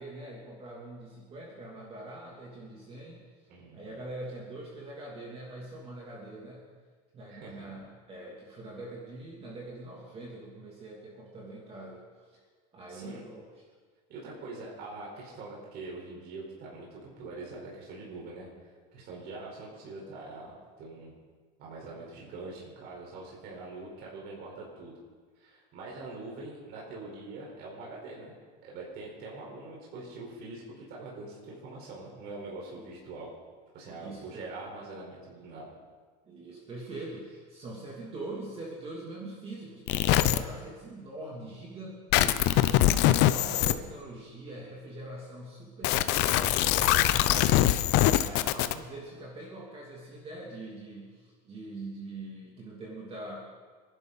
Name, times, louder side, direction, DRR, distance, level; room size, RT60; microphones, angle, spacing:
voice 1, 0.0-3.2 3.7-6.6 7.1-12.4 12.7-13.4 32.7-32.9 33.9-34.4 36.3-53.4, right 2 dB, 30° right, -3 dB, 2.9 m, -43 dB
voice 2, 3.5-3.9 7.3-7.6 12.9-13.2 14.1-21.1 21.6-25.0 25.4-28.3 28.6-30.6 30.9-33.3 33.7-35.7, right 3 dB, 50° right, -3 dB, 4.7 m, -43 dB
sound 1, 39.9-40.4 42.1-43.7 45.8-48.7, left 14 dB, 55° left, 0.7 m, -23 dB
27.0 x 11.5 x 4.2 m, 1.5 s
cardioid pair, 145°, 21 cm